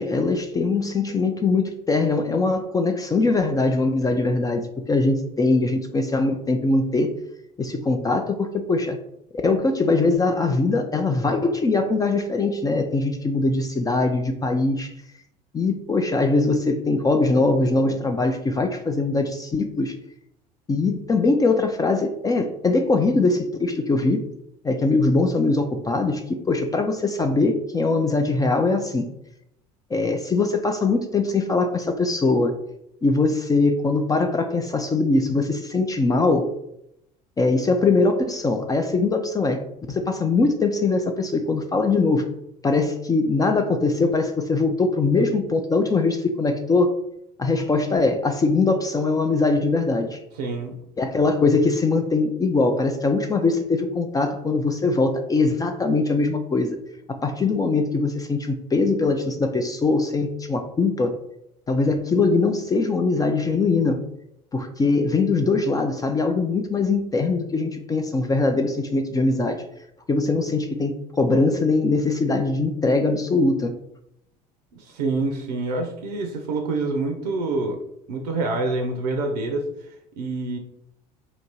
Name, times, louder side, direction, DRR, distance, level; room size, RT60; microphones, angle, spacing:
voice 1, 0.0-7.1 7.6-9.0 9.4-14.9 15.5-19.9 20.7-24.2 24.6-29.1 29.9-32.5 33.0-36.5 37.4-39.6 39.9-42.3 42.6-46.9 47.4-50.2 51.0-56.8 57.2-61.2 61.7-64.0 64.5-69.6 70.1-73.7, left 3 dB, 15° left, 6 dB, 0.4 m, -22 dB
voice 2, 50.4-50.8 74.7-77.8 78.1-80.6, right 3 dB, 70° right, 4 dB, 0.6 m, -27 dB
2.9 x 2.6 x 4.3 m, 0.78 s
figure-of-eight pair, 65°, 21 cm